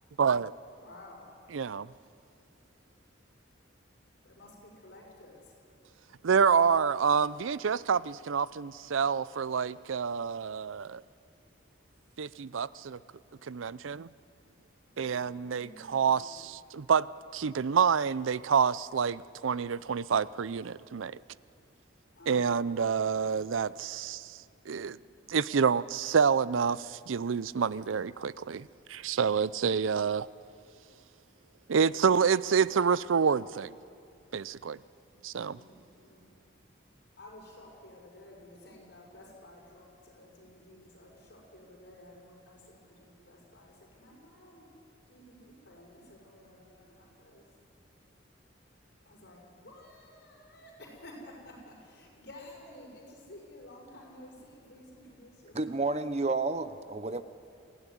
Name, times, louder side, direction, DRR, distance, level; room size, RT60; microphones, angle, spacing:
voice 1, 0.2-0.5 1.5-1.9 6.2-11.0 12.2-13.0 13.4-14.1 15.0-17.1 17.3-21.2 22.3-25.0 25.3-30.3 31.7-33.7 34.3-34.8 35.2-35.6, right 6 dB, 90° right, 19 dB, 0.5 m, -28 dB
voice 2, 0.7-1.4 2.1-6.3 10.6-12.5 13.2-16.3 21.0-23.4 24.6-24.7 25.1-25.2 28.4-29.2 30.7-31.0 31.3-31.7 33.9-34.1 34.8-55.8, left 1 dB, 60° left, -2 dB, 6.2 m, -55 dB
voice 3, 55.5-57.2, right 3 dB, 35° right, 12 dB, 0.7 m, -30 dB
23.5 x 16.0 x 10.0 m, 2.4 s
head